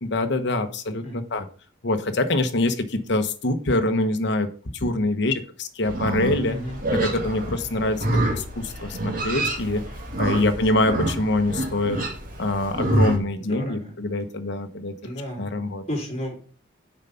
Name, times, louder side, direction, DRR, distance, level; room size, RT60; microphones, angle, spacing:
voice 1, 0.0-1.5 1.8-4.5 4.7-6.6 6.9-8.0 8.3-9.8 10.2-12.0 12.4-14.9 15.4-15.8, left 2 dB, 60° left, 8 dB, 1.0 m, -24 dB
Livestock farm animals working animals, 5.8-13.2, right 1 dB, 45° right, 2.0 m, -27 dB
voice 2, 6.4-6.8 9.4-9.5 10.1-10.6 13.4-13.9 15.0-15.5 15.9-16.4, equal, 35° left, -1 dB, 3.6 m, -33 dB
7.2 x 5.3 x 5.7 m, 0.40 s
head